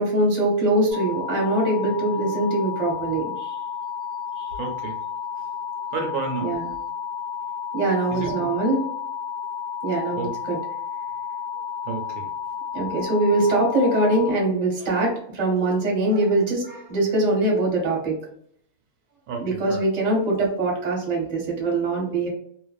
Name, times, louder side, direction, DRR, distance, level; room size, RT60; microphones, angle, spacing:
voice 1, 0.0-3.6 4.4-4.5 6.4-6.7 7.7-8.8 9.8-10.6 12.7-18.1 19.4-22.3, right 2 dB, 35° right, -2 dB, 0.8 m, -23 dB
sound 1, 0.9-14.3, left 7 dB, 40° left, 1.0 m, -32 dB
voice 2, 4.6-4.9 5.9-6.6 8.1-8.5 10.2-10.3 11.9-12.3 19.3-19.8, right 4 dB, 80° right, 2 dB, 1.0 m, -30 dB
2.5 x 2.2 x 2.2 m, 0.65 s
omnidirectional pair, 1.5 m